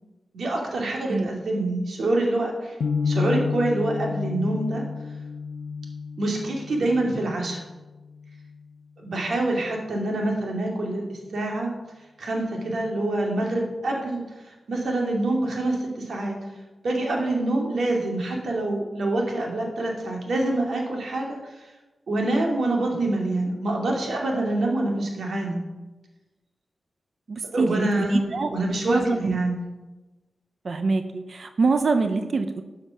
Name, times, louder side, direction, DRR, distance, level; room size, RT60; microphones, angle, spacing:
voice 1, 0.3-2.8 3.0-4.8 6.2-7.6 9.0-11.7 12.2-16.4 16.8-21.4 22.1-25.6 27.5-29.6, right 2 dB, 75° right, 0 dB, 2.5 m, -26 dB
sound 1, 2.8-8.9, left 5 dB, 80° left, 0.5 m, -31 dB
voice 2, 27.3-28.5 28.9-29.4 30.6-32.6, right 4 dB, 55° right, 8 dB, 0.7 m, -24 dB
12.5 x 6.6 x 5.8 m, 1.1 s
wide cardioid pair, 85°, 0 cm